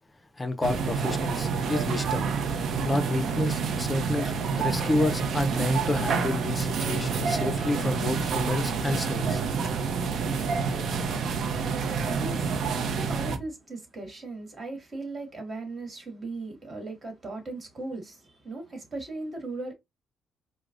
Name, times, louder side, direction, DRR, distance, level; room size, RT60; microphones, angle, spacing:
voice 1, 0.4-2.3 2.8-9.4, left 2 dB, 15° left, 0.5 m, -30 dB
sound 1, 0.6-13.4, right 5 dB, 65° right, 0.5 m, -28 dB
voice 2, 11.1-19.7, right 2 dB, 40° right, 1.8 m, -38 dB
4.5 x 2.0 x 2.5 m
cardioid pair, 90°, 0 cm